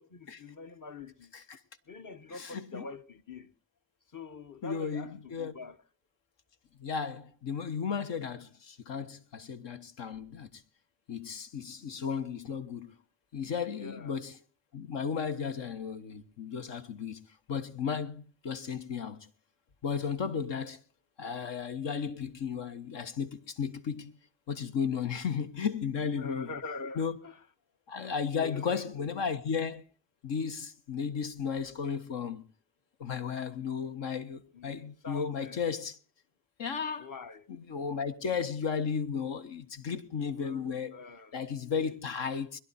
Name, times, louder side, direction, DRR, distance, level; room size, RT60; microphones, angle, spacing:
voice 1, 0.0-1.3 1.9-3.5 4.1-5.8 13.7-14.2 26.0-27.4 28.4-29.1 34.5-35.6 37.0-37.5 40.2-41.3 41.7-42.1, left 4 dB, 45° left, 1.3 m, -45 dB
voice 2, 2.3-2.9 4.6-5.5 6.8-10.6 11.1-13.0 13.3-14.4 14.7-19.2 19.8-20.8 21.2-24.2 24.5-26.5 26.9-27.2 27.9-29.8 30.2-32.4 33.0-36.0 36.6-37.1 37.5-41.0 41.3-42.6, left 6 dB, 70° left, 1.4 m, -34 dB
22.0 x 11.0 x 4.3 m
supercardioid pair, 50°, 45 cm